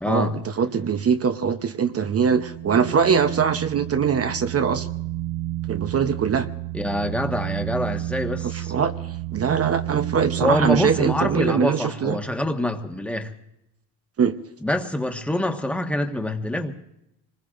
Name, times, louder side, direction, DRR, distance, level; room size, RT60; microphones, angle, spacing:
voice 1, 0.0-0.4 6.7-8.7 10.4-13.3 14.6-16.7, left 1 dB, 5° left, 4 dB, 1.4 m, -25 dB
voice 2, 0.6-4.9 5.7-6.5 8.5-8.9 9.3-12.2 14.2-14.4, right 6 dB, 35° right, 9 dB, 0.9 m, -22 dB
sound 1, 2.0-11.5, right 15 dB, 75° right, 0.6 m, -31 dB
25.5 x 20.5 x 2.6 m, 0.85 s
cardioid pair, 105°, 42 cm